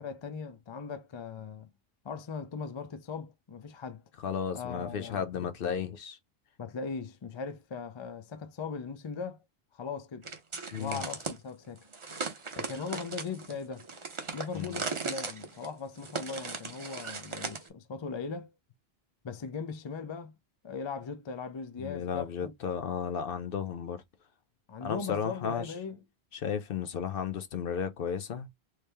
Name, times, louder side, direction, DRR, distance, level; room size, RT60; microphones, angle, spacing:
voice 1, 0.0-1.7 2.0-4.0 4.5-5.3 6.6-9.4 9.7-11.8 12.6-13.9 14.3-18.5 19.2-20.3 20.6-22.5 24.7-26.0, left 5 dB, 40° left, 0.4 m, -39 dB
voice 2, 4.2-6.2 10.7-11.0 14.5-14.7 21.8-24.0 24.8-25.7 26.3-28.5, left 7 dB, 65° left, 0.8 m, -34 dB
sound 1, 10.2-11.4 11.9-17.7, right 4 dB, 35° right, 0.7 m, -38 dB
3.3 x 2.6 x 3.3 m
omnidirectional pair, 1.0 m